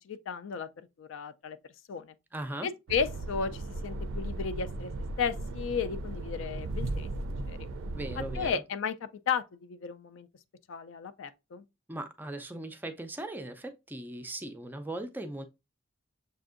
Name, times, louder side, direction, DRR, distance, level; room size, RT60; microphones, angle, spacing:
voice 1, 0.1-1.6 1.9-2.1 2.6-4.9 5.2-7.1 7.5-7.7 8.4-10.3 10.7-11.6, left 6 dB, 70° left, 0.4 m, -34 dB
voice 2, 2.3-2.7 7.9-8.6 11.9-15.4, right 1 dB, 10° right, 0.4 m, -39 dB
sound 1, 2.9-8.5, right 2 dB, 80° right, 0.4 m, -36 dB
6.6 x 2.6 x 2.5 m
head